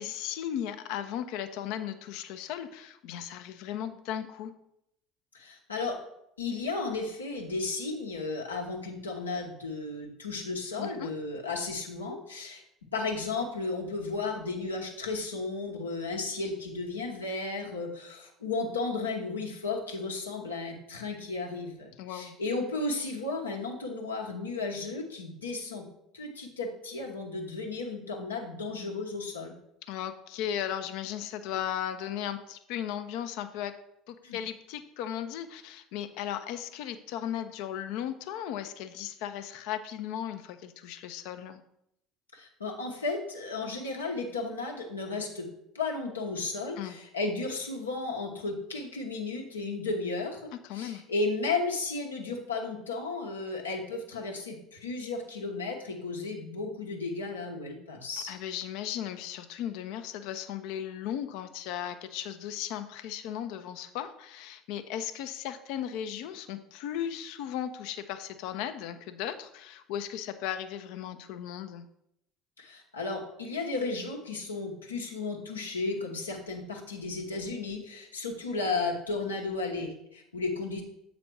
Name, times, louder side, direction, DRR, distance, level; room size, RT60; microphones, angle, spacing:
voice 1, 0.0-4.5 10.8-11.1 22.0-22.3 29.9-33.8 34.1-41.6 46.8-47.0 50.6-51.0 58.3-71.8, left 10 dB, 65° left, 9 dB, 0.6 m, -36 dB
voice 2, 5.3-6.0 6.4-12.6 12.9-25.9 26.1-29.5 34.2-34.4 42.3-45.5 45.7-58.3 72.6-80.8, left 3 dB, 85° left, 0 dB, 1.0 m, -34 dB
7.7 x 4.1 x 4.6 m, 0.78 s
figure-of-eight pair, 65°, 0 cm